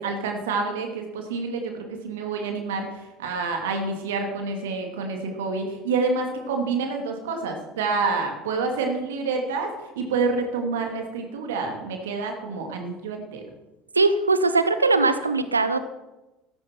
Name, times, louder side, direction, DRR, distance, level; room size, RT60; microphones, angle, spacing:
voice 1, 0.0-9.7 10.0-13.5, right 4 dB, 65° right, 3 dB, 2.7 m, -28 dB
voice 2, 13.9-15.8, right 3 dB, 85° right, 12 dB, 1.0 m, -20 dB
16.0 x 15.0 x 4.5 m, 1.0 s
figure-of-eight pair, 65°, 0 cm